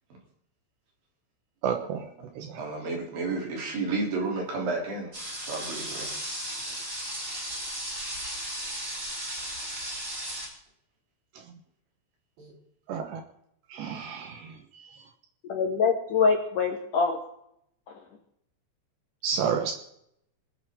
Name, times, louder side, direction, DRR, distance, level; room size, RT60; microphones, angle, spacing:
voice 1, 1.6-2.0 2.4-2.6 12.9-13.2 13.7-14.5 19.2-19.7, right 7 dB, 70° right, 5 dB, 3.1 m, -30 dB
voice 2, 2.5-5.1 5.5-6.1 6.6-6.8 12.4-12.5, right 3 dB, 50° right, 0 dB, 4.8 m, -31 dB
sound 1, 5.1-10.5, equal, 15° right, 4.6 m, -35 dB
voice 3, 15.5-17.2, left 5 dB, 60° left, 1 dB, 2.3 m, -24 dB
25.5 x 9.4 x 3.7 m, 0.74 s
omnidirectional pair, 5.6 m